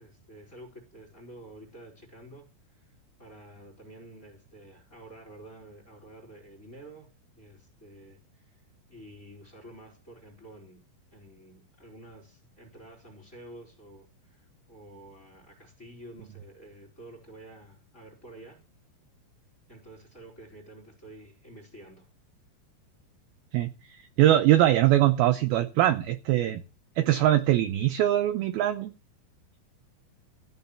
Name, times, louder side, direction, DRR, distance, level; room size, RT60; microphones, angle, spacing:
voice 1, 0.0-2.4 2.8-2.9 3.2-7.1 7.4-8.6 8.9-10.8 11.1-18.6 19.7-22.1, right 1 dB, 15° left, 1 dB, 4.0 m, -49 dB
voice 2, 23.5-26.6 27.0-28.9, right 13 dB, 80° right, 9 dB, 2.2 m, -22 dB
15.0 x 5.4 x 7.1 m, 0.33 s
omnidirectional pair, 5.2 m